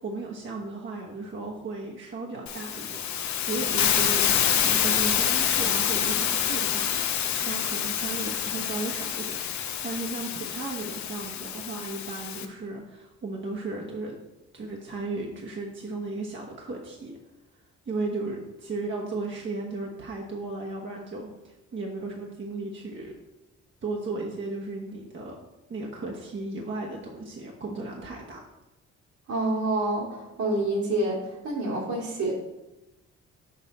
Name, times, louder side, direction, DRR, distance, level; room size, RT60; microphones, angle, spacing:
voice 1, 0.0-14.2 14.5-17.2 17.9-23.1 23.8-25.4 25.7-28.4, right 3 dB, 40° right, -2 dB, 1.1 m, -35 dB
Hiss, 2.5-12.5, left 9 dB, 70° left, 0.8 m, -27 dB
voice 2, 29.3-31.2 31.4-32.3, right 2 dB, 70° right, -3 dB, 2.4 m, -27 dB
6.5 x 5.3 x 4.1 m, 1.0 s
cardioid pair, 90°, 30 cm